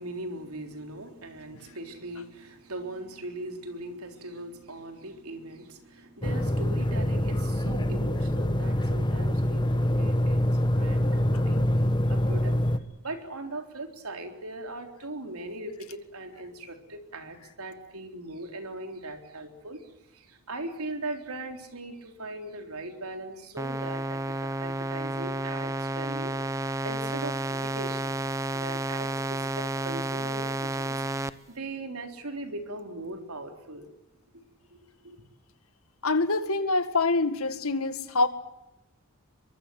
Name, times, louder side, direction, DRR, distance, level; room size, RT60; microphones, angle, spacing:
voice 1, 0.0-11.7 12.1-12.6 13.0-28.2 28.5-33.9 34.3-34.4 34.7-34.8 35.0-35.2, right 2 dB, 80° right, 6 dB, 3.8 m, -40 dB
sound 1, 6.2-12.8, left 1 dB, 20° left, 1.2 m, -25 dB
sound 2, 23.6-31.3, right 2 dB, 15° right, 0.9 m, -31 dB
voice 2, 36.0-38.3, left 3 dB, 75° left, 11 dB, 2.0 m, -25 dB
23.5 x 23.5 x 7.8 m, 0.88 s
head